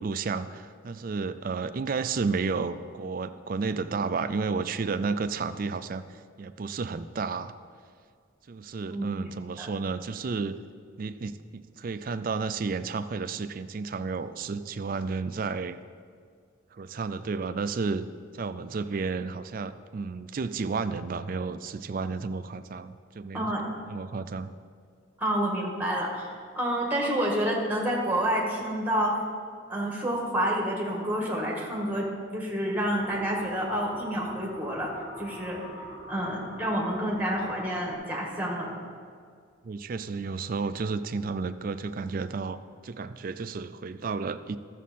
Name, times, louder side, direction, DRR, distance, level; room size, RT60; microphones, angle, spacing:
voice 1, 0.0-7.5 8.5-10.6 11.0-15.8 16.7-18.1 18.3-23.5 23.9-24.5 39.6-42.6 42.8-44.6, right 4 dB, 45° right, 11 dB, 0.3 m, -32 dB
voice 2, 23.3-23.7 25.2-29.2 29.7-34.9 35.2-35.6 36.1-38.7, equal, 10° right, -2 dB, 1.6 m, -29 dB
sound 1, 33.0-37.9, left 1 dB, 80° left, 1.8 m, -44 dB
13.0 x 7.2 x 4.2 m, 2.1 s
head